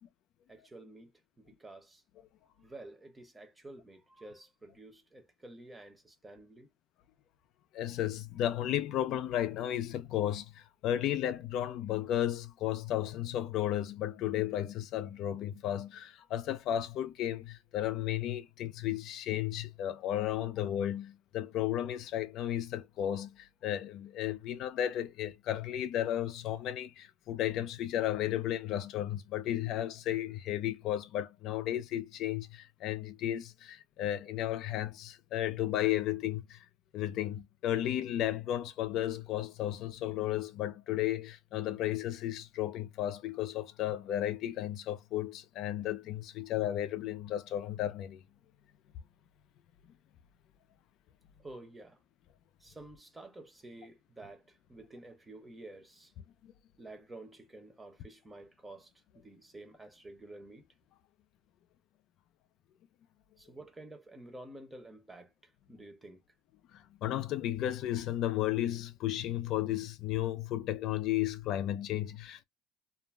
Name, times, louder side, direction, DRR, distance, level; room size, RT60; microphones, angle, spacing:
voice 1, 0.5-1.1 1.4-2.0 2.6-6.7 51.4-52.0 52.6-56.1 56.8-60.6 63.4-66.2, right 2 dB, 15° right, 0.7 m, -50 dB
voice 2, 7.7-36.7 36.9-48.2 56.4-56.5 66.7-72.4, left 12 dB, 60° left, 0.4 m, -34 dB
2.4 x 2.0 x 3.2 m
cardioid pair, 125°, 0 cm